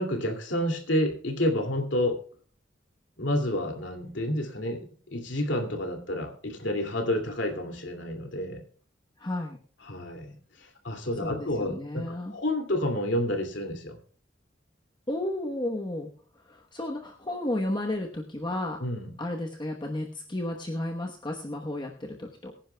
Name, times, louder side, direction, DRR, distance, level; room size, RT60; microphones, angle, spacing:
voice 1, 0.0-2.2 3.2-8.6 9.8-12.0 12.3-14.0 18.8-19.1, left 1 dB, 85° left, 5 dB, 2.6 m, -29 dB
voice 2, 9.2-9.6 11.2-12.3 15.1-16.1 16.4-18.8 19.2-22.5, left 1 dB, 25° left, 0 dB, 1.1 m, -33 dB
23.5 x 10.0 x 2.3 m, 0.43 s
head